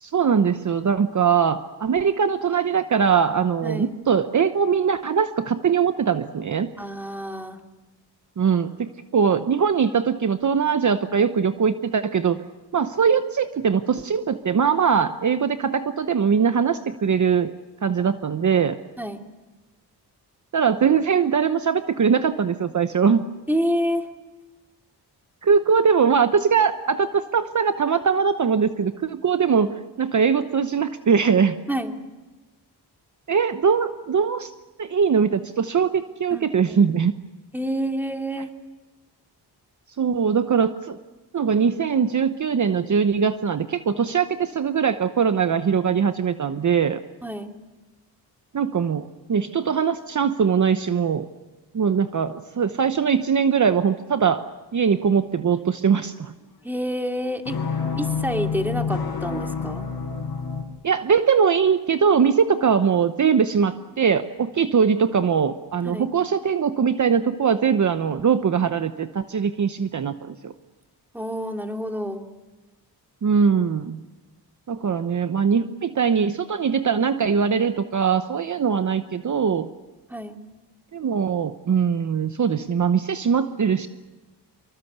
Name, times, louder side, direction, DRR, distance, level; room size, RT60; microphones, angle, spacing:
voice 1, 0.0-6.7 8.4-12.4 12.7-17.5 17.8-18.8 20.5-23.2 25.4-31.5 33.3-34.5 34.8-37.1 40.0-41.0 41.3-47.0 48.5-49.0 49.3-51.3 51.7-54.4 54.7-56.3 60.8-70.5 73.2-74.0 74.7-79.7 80.9-83.9, right 6 dB, 45° right, 10 dB, 1.0 m, -21 dB
voice 2, 3.6-3.9 6.8-7.6 19.0-19.2 23.5-24.1 31.7-31.9 36.3-36.8 37.5-38.5 47.2-47.5 56.6-57.6 58.0-59.9 65.8-66.1 71.1-72.2 80.1-80.4, equal, 5° right, 4 dB, 2.6 m, -28 dB
sound 1, 57.5-60.6, left 6 dB, 60° left, 4.5 m, -28 dB
25.5 x 24.5 x 8.1 m, 1.2 s
wide cardioid pair, 110°, 40 cm